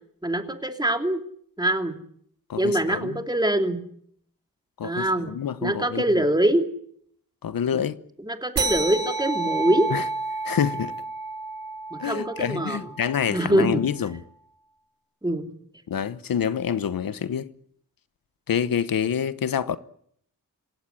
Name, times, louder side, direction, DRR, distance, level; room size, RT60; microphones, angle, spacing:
voice 1, 0.2-1.2 1.6-1.9 2.5-3.8 4.8-5.3 5.6-6.6 8.2-9.9 11.9-12.8 13.3-13.8 15.2-15.5, right 1 dB, 10° right, 3.0 m, -23 dB
voice 2, 2.5-3.2 4.8-6.2 7.4-8.0 9.9-10.0 10.4-10.9 12.0-14.2 15.9-17.5 18.5-19.8, left 8 dB, 85° left, 1.0 m, -27 dB
sound 1, 8.6-13.5, right 3 dB, 85° right, 4.6 m, -30 dB
27.0 x 16.5 x 9.9 m
wide cardioid pair, 95°, 34 cm